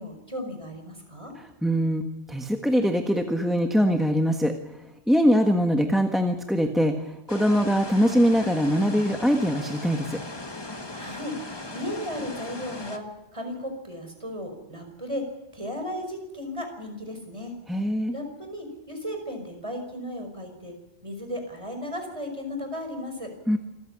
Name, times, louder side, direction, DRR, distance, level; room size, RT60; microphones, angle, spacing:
voice 1, 0.0-1.3 10.7-11.3 11.7-13.0 13.3-15.2 15.5-17.5 18.1-20.7 21.0-23.3, left 1 dB, 30° right, 5 dB, 5.3 m, -35 dB
voice 2, 1.6-2.0 2.3-4.5 5.1-10.2 17.7-18.1 23.5-23.6, equal, ahead, 5 dB, 1.4 m, -22 dB
sound 1, 7.3-13.0, left 2 dB, 25° left, 1.6 m, -38 dB
27.0 x 14.5 x 9.9 m, 0.96 s
omnidirectional pair, 1.1 m